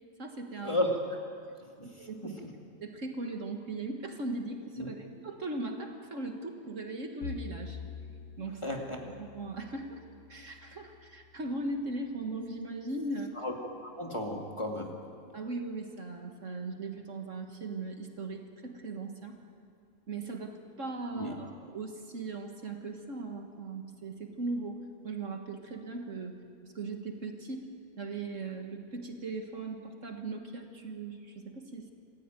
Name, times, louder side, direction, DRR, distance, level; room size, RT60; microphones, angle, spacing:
voice 1, 0.2-0.8 1.8-2.4 2.8-7.8 8.4-8.6 9.2-10.0 10.3-13.3 15.3-19.4 20.1-27.7 28.0-31.9, right 3 dB, 50° right, 4 dB, 1.9 m, -39 dB
Bowed string instrument, 7.2-11.6, left 5 dB, 80° left, 2.0 m, -46 dB
voice 2, 8.6-9.0 13.4-13.5 13.8-15.0 21.1-21.3, left 1 dB, 20° left, 1 dB, 2.2 m, -33 dB
26.5 x 15.5 x 9.1 m, 2.3 s
omnidirectional pair, 1.7 m